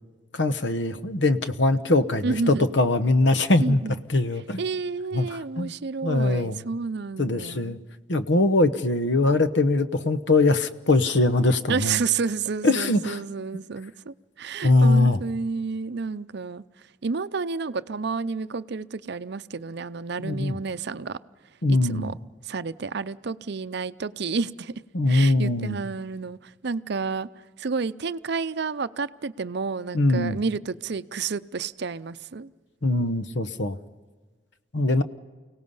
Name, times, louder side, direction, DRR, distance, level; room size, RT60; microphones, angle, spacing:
voice 1, 0.3-3.8 4.1-4.6 5.1-5.7 6.0-6.6 7.2-7.8 8.1-12.0 12.6-13.2 14.6-15.2 20.2-20.5 21.6-22.1 24.9-25.8 29.9-30.4 32.8-33.8 34.7-35.0, left 2 dB, 65° left, 1.0 m, -22 dB
voice 2, 2.2-2.7 3.6-4.0 4.6-7.8 11.7-16.6 17.0-21.2 21.7-22.1 22.4-24.7 25.1-27.3 27.6-32.5, right 4 dB, 60° right, 0.6 m, -30 dB
29.5 x 17.5 x 5.6 m
head